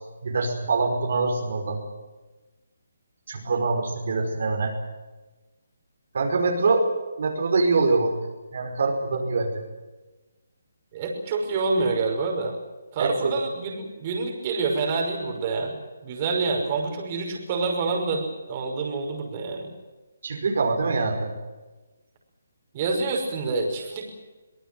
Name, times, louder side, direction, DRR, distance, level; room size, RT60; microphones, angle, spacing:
voice 1, 0.2-1.8 3.3-4.7 6.1-6.9 7.2-8.2 8.5-9.6 13.0-13.3 20.2-21.3, right 3 dB, 60° right, 2 dB, 5.2 m, -24 dB
voice 2, 10.9-12.5 12.9-19.7 22.7-24.0, right 3 dB, 30° right, 2 dB, 5.7 m, -27 dB
25.0 x 19.0 x 7.9 m, 1.2 s
hypercardioid pair, 160°, 0 cm